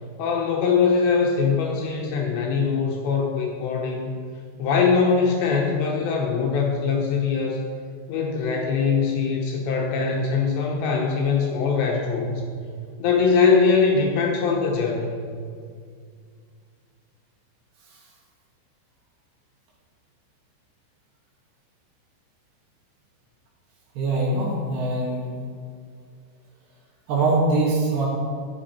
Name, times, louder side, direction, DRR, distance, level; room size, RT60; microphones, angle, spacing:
voice 1, 0.2-4.1 4.6-7.6 8.1-12.4 13.0-15.1, left 5 dB, 75° left, 0 dB, 2.9 m, -22 dB
voice 2, 23.9-25.3 27.1-28.1, right 2 dB, 65° right, -3 dB, 3.3 m, -22 dB
12.5 x 8.3 x 4.3 m, 2.1 s
omnidirectional pair, 5.6 m